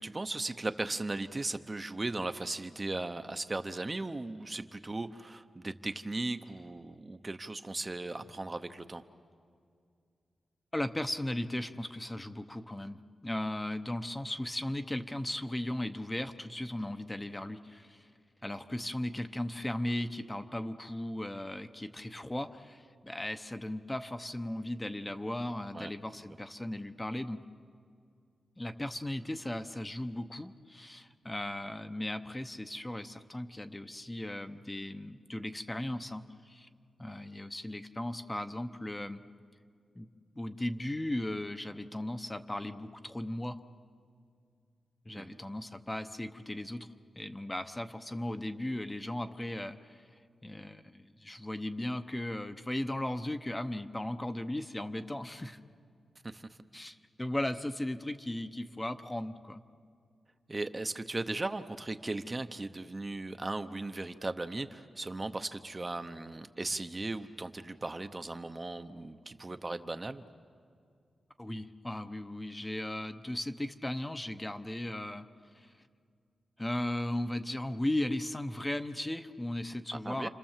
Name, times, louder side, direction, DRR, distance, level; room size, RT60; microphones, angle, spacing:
voice 1, 0.0-9.0 25.7-25.9 45.2-45.4 56.2-56.5 60.5-70.2 80.0-80.3, right 2 dB, 20° right, 9 dB, 0.7 m, -37 dB
voice 2, 10.7-18.1 18.4-27.4 28.6-36.7 37.0-39.2 40.0-40.1 40.4-43.6 45.1-46.9 47.2-50.1 50.4-55.6 56.7-59.6 71.4-75.3 75.5-75.7 76.6-80.3, left 1 dB, 15° left, 9 dB, 0.8 m, -37 dB
29.5 x 26.5 x 7.4 m, 2.3 s
wide cardioid pair, 140°, 0 cm